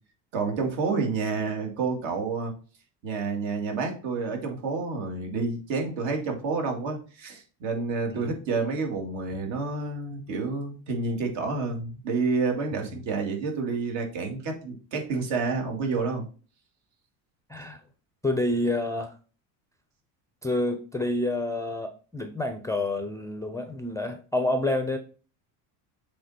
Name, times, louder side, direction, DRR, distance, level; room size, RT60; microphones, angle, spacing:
voice 1, 0.3-2.5 3.0-16.3, right 4 dB, 70° right, 2 dB, 2.4 m, -29 dB
voice 2, 17.5-17.8 18.2-19.1 20.4-25.0, left 2 dB, 5° left, 6 dB, 0.4 m, -28 dB
7.6 x 3.6 x 4.2 m, 0.37 s
cardioid pair, 130°, 46 cm